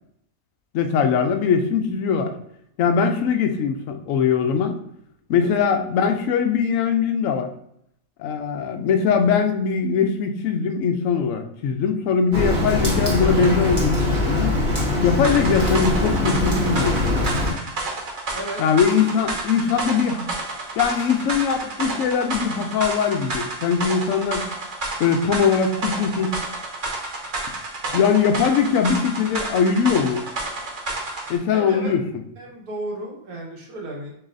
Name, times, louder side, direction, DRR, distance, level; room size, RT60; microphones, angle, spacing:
voice 1, 0.7-2.3 2.8-4.8 5.3-7.5 8.2-14.5 15.0-17.2 18.6-20.3 20.8-24.5 25.0-26.3 27.9-30.3 31.3-32.0, left 6 dB, 70° left, 6 dB, 0.9 m, -21 dB
Rain, 12.3-17.5, left 2 dB, 35° right, 1.3 m, -22 dB
sound 1, 15.2-31.4, right 2 dB, 60° right, 1.4 m, -30 dB
voice 2, 31.5-31.9 32.4-34.1, right 1 dB, 80° right, -1 dB, 1.6 m, -33 dB
7.1 x 2.7 x 2.6 m, 0.74 s
omnidirectional pair, 1.5 m